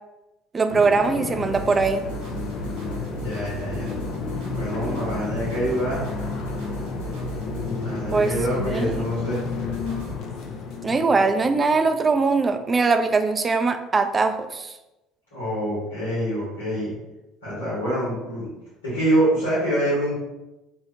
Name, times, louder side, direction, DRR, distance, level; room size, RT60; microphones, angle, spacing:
voice 1, 0.5-2.1 8.1-8.3 8.7-9.1 10.8-14.7, right 4 dB, 30° right, 8 dB, 0.3 m, -21 dB
sound 1, 0.7-12.5, left 5 dB, 55° left, 0.5 m, -32 dB
sound 2, 1.4-10.1, right 4 dB, 70° right, 0.8 m, -37 dB
voice 2, 3.1-3.9 4.5-6.0 7.7-9.4 15.3-16.9 17.4-18.5 18.8-20.1, right 1 dB, 85° left, -11 dB, 1.4 m, -25 dB
2.8 x 2.6 x 3.3 m, 0.99 s
hypercardioid pair, 65°, 0 cm